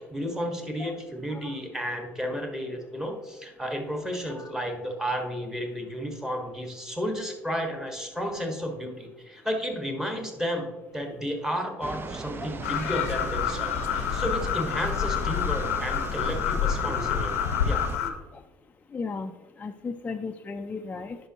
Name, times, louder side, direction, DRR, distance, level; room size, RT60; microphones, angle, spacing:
voice 1, 0.0-17.3 17.6-17.8, equal, 5° right, 3 dB, 1.6 m, -32 dB
sound 1, 11.8-18.0, right 4 dB, 30° right, 0.6 m, -38 dB
sound 2, 12.6-18.1, left 8 dB, 90° left, 0.7 m, -28 dB
voice 2, 18.0-18.4 18.9-19.3 19.6-21.2, left 4 dB, 20° left, 5 dB, 0.4 m, -36 dB
11.0 x 5.4 x 2.9 m, 1.2 s
hypercardioid pair, 70°, 7 cm